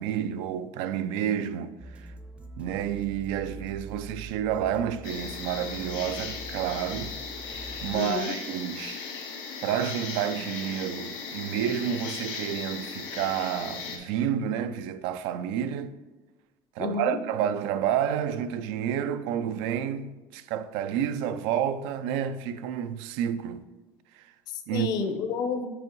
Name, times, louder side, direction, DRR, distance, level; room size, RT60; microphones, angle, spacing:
voice 1, 0.0-2.1 2.6-7.1 7.8-9.1 9.6-15.9 16.8-23.6 24.1-24.3 24.7-24.9, right 9 dB, 80° right, 0.4 m, -30 dB
sound 1, 1.8-8.0, right 3 dB, 15° right, 0.5 m, -44 dB
sound 2, 5.0-14.0, left 5 dB, 80° left, 1.7 m, -37 dB
voice 2, 7.9-8.3 16.8-17.2 24.5-25.7, left 5 dB, 50° left, 0.7 m, -30 dB
6.0 x 4.5 x 4.6 m
cardioid pair, 140°, 9 cm